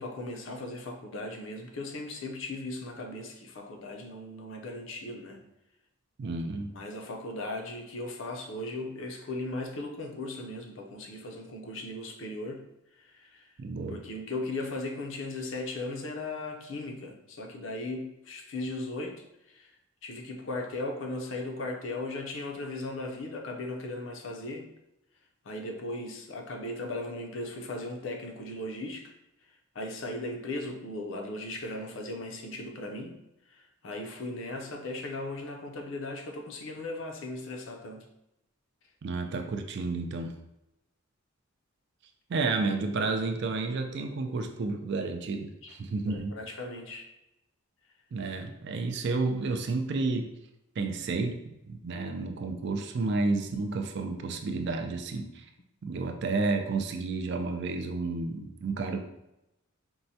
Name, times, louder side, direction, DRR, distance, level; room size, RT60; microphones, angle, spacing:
voice 1, 0.0-5.4 6.7-12.6 13.0-13.5 13.9-19.7 20.0-24.7 25.4-29.1 29.7-33.2 33.5-38.1 46.1-47.1, left 2 dB, 60° left, 2 dB, 0.5 m, -37 dB
voice 2, 6.2-6.7 13.6-14.0 39.0-40.4 42.3-46.4 48.1-50.3 50.8-55.4 55.8-59.0, right 3 dB, 55° right, 6 dB, 0.3 m, -31 dB
4.4 x 2.1 x 2.7 m, 0.87 s
head